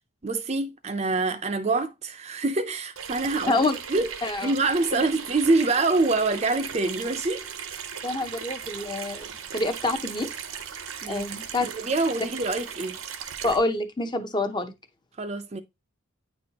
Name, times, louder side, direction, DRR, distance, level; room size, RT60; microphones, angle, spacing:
voice 1, 0.2-3.6 3.9-4.1 4.4-7.4 11.0-11.3 11.6-13.0 15.2-15.6, right 3 dB, 30° right, 0.5 m, -25 dB
Water tap faucet / Sink (filling or washing), 3.0-13.6, right 7 dB, 85° right, 0.8 m, -37 dB
voice 2, 3.5-3.8 4.2-4.5 4.9-5.0 8.0-10.3 11.1-11.7 13.4-14.7, left 2 dB, 20° left, 0.6 m, -27 dB
9.1 x 4.3 x 2.8 m
head